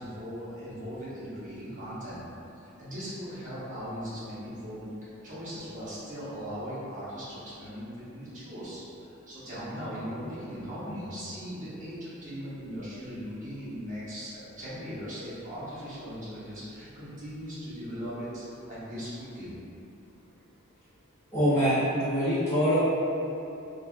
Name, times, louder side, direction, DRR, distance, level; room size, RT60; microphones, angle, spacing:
voice 1, 0.0-2.2 2.6-4.9 5.2-19.5, equal, 35° right, -11 dB, 0.9 m, -39 dB
voice 2, 21.3-22.8, equal, 10° left, -16 dB, 1.2 m, -24 dB
3.3 x 2.4 x 2.3 m, 2.8 s
head